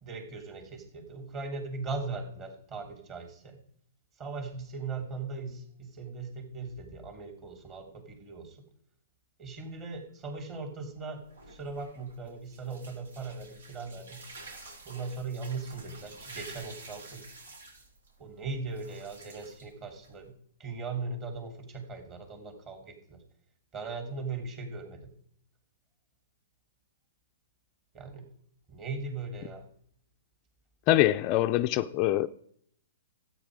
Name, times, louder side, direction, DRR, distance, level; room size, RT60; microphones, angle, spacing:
voice 1, 0.0-3.6 4.2-8.6 9.4-14.2 14.8-17.3 18.2-20.3 20.6-23.2 23.7-25.1 27.9-28.3 28.7-29.7, right 4 dB, 25° right, 3.1 m, -39 dB
sound 1, 11.1-20.3, right 3 dB, 80° right, 4.6 m, -50 dB
voice 2, 30.9-32.3, left 15 dB, 35° left, 0.4 m, -24 dB
13.0 x 9.0 x 4.8 m
hypercardioid pair, 135°, 0 cm